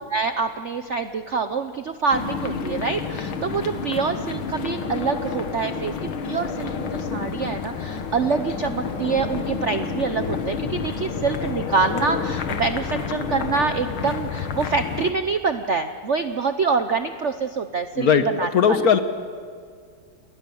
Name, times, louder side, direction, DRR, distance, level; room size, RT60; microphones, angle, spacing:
voice 1, 0.1-6.0 6.2-18.9, right 5 dB, 60° right, 9 dB, 0.8 m, -26 dB
sound 1, 2.1-15.1, left 6 dB, 85° left, 2.2 m, -29 dB
voice 2, 18.0-19.0, left 6 dB, 55° left, 10 dB, 1.3 m, -18 dB
29.0 x 20.0 x 7.0 m, 2.1 s
omnidirectional pair, 2.2 m